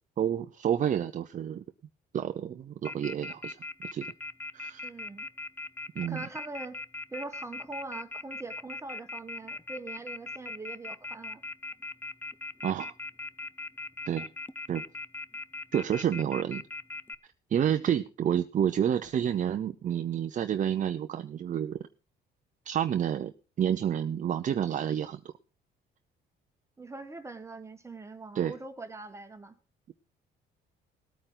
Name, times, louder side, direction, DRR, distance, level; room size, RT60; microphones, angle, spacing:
voice 1, 0.2-1.6 2.1-3.6 3.9-4.1 4.5-4.9 6.0-6.3 12.6-12.9 14.1-14.3 14.7-14.8 15.7-16.6 17.5-21.9 22.7-23.3 23.6-25.2 28.3-28.5, right 9 dB, 45° right, 8 dB, 0.6 m, -29 dB
Telephone, 2.8-17.1, left 2 dB, 10° left, 0.6 m, -39 dB
voice 2, 4.8-5.3 6.1-6.8 7.1-11.4 26.8-29.6, right 3 dB, 15° right, 7 dB, 1.3 m, -42 dB
18.5 x 9.0 x 3.9 m, 0.34 s
cardioid pair, 115°, 19 cm